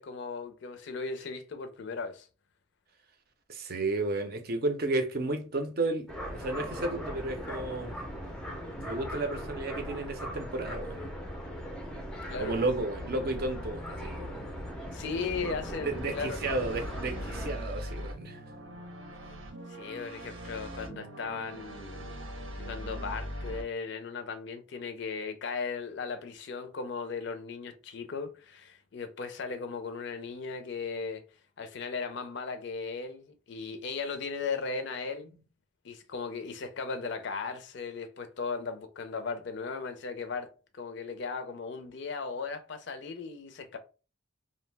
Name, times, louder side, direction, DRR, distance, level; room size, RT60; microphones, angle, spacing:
voice 1, 0.0-2.3 12.3-12.6 14.9-16.4 19.7-22.2 22.6-31.2 31.6-35.3 35.8-43.8, left 4 dB, 60° left, 0.4 m, -37 dB
voice 2, 3.5-8.0 8.8-11.1 12.4-14.5 15.8-18.4 35.3-35.4, right 2 dB, 50° right, 0.5 m, -33 dB
sound 1, 6.1-17.5, equal, 5° left, 0.4 m, -39 dB
sound 2, 15.4-23.6, right 1 dB, 85° right, 0.7 m, -41 dB
2.6 x 2.0 x 3.2 m
head